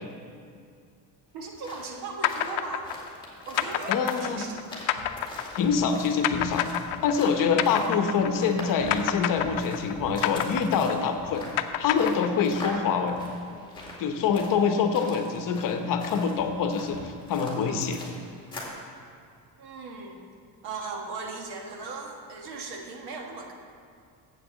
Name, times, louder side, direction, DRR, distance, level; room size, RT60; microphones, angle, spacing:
voice 1, 1.3-2.9 3.4-4.6 19.6-20.3 20.6-23.5, right 4 dB, 65° right, 2 dB, 1.5 m, -38 dB
sound 1, 1.4-18.8, left 2 dB, 10° left, 2.2 m, -43 dB
sound 2, 2.2-8.6 8.9-12.8, left 12 dB, 70° left, 0.6 m, -29 dB
voice 2, 3.9-4.4 5.5-6.7 7.0-11.4 11.8-13.2 14.0-18.0, left 6 dB, 50° left, 6 dB, 0.9 m, -25 dB
sound 3, 4.3-19.8, left 1 dB, 40° right, 1.9 m, -47 dB
7.8 x 6.8 x 7.3 m, 2.3 s
cardioid pair, 140°, 41 cm